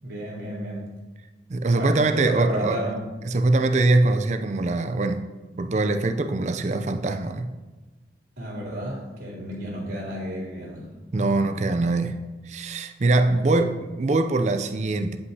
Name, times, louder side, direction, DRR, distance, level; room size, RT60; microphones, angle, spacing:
voice 1, 0.0-0.9 1.7-2.9 8.4-10.9 13.2-13.6, right 1 dB, 75° right, -11 dB, 2.4 m, -32 dB
voice 2, 1.5-2.8 3.3-5.2 5.6-7.5 11.1-12.2 12.5-15.2, right 2 dB, 40° right, 8 dB, 0.4 m, -23 dB
9.5 x 5.5 x 2.7 m, 1.2 s
head